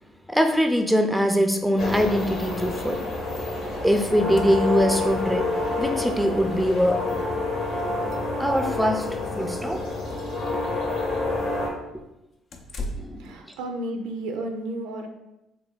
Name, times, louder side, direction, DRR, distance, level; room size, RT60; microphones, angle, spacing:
voice 1, 0.3-3.0 3.8-7.0 8.4-9.8 13.0-13.3, equal, ahead, 5 dB, 0.5 m, -23 dB
sound 1, 1.8-11.7, left 2 dB, 70° left, 0.9 m, -28 dB
sound 2, 3.4-3.5 3.8-3.9 4.1-5.4 6.6-6.7 7.1-7.2 7.7-8.7 9.1-9.4 9.8-10.4 12.5-13.3, left 1 dB, 55° left, 0.5 m, -39 dB
voice 2, 12.7-15.1, right 1 dB, 85° right, 4 dB, 0.4 m, -33 dB
3.2 x 2.3 x 3.7 m, 0.91 s
supercardioid pair, 70°, 0 cm